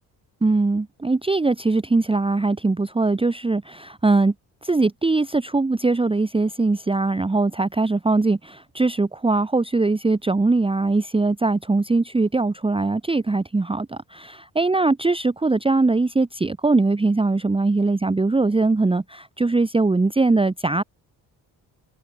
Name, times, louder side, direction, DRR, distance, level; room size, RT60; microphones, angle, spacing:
voice 1, 0.4-4.3 4.6-20.8, right 3 dB, 15° right, 0.9 m, -21 dB
cardioid pair, 70°, 41 cm